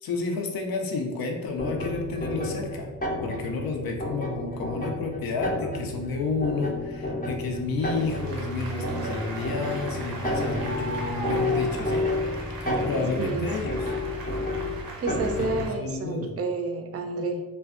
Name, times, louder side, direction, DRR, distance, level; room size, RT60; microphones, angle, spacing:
voice 1, 0.0-2.9 3.2-12.1 12.6-13.8 15.4-16.3, left 3 dB, 80° left, 3 dB, 0.5 m, -31 dB
sound 1, 1.6-15.7, left 1 dB, 25° left, 0.5 m, -31 dB
Applause, 7.8-15.7, right 2 dB, 85° right, 0.6 m, -38 dB
voice 2, 15.0-17.4, right 3 dB, 45° right, 5 dB, 0.4 m, -30 dB
2.5 x 2.2 x 2.4 m, 1.2 s
cardioid pair, 60°, 35 cm